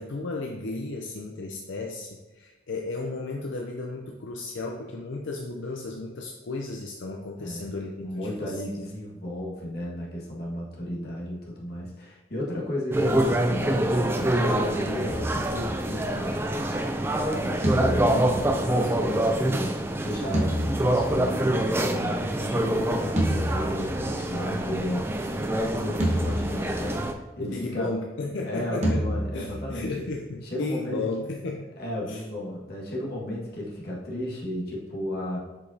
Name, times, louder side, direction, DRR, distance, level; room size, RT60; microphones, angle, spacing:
voice 1, 0.0-8.6 27.4-29.1 29.3-31.7 32.0-32.2, left 3 dB, 80° left, 1 dB, 0.6 m, -34 dB
voice 2, 7.4-7.7 8.0-16.4 17.1-25.2 25.5-27.9 28.4-29.9 30.4-31.0 31.8-35.4, left 1 dB, 55° left, -4 dB, 1.6 m, -34 dB
sound 1, 12.9-27.1, right 1 dB, 10° right, 0.3 m, -26 dB
sound 2, 15.1-16.4 17.6-19.3 20.3-21.7 23.2-24.5 26.0-27.2 28.8-30.3, equal, 35° right, 1.1 m, -30 dB
7.6 x 5.0 x 2.7 m, 1.2 s
head